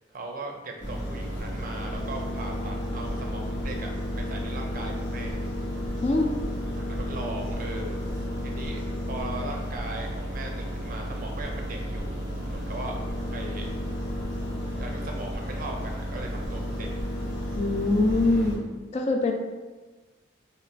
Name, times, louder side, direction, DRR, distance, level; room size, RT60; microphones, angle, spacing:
voice 1, 0.1-5.4 6.6-8.0 8.4-12.2 12.5-13.7 14.8-16.9 18.1-18.5, right 2 dB, 45° right, 1 dB, 0.5 m, -39 dB
sound 1, 0.8-18.6, equal, 75° left, 1.5 m, -32 dB
voice 2, 6.0-6.3 17.6-18.6 18.9-19.3, left 2 dB, 35° left, 2 dB, 0.3 m, -23 dB
3.0 x 2.4 x 4.3 m, 1.3 s
head